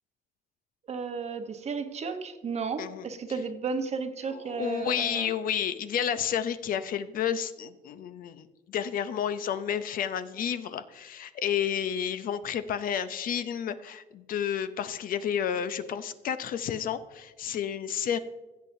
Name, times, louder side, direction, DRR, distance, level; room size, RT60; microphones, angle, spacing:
voice 1, 0.9-5.3, right 5 dB, 40° right, 8 dB, 0.9 m, -33 dB
voice 2, 4.2-18.2, left 8 dB, 55° left, 12 dB, 0.6 m, -31 dB
15.5 x 7.5 x 2.6 m, 1.2 s
cardioid pair, 110°, 17 cm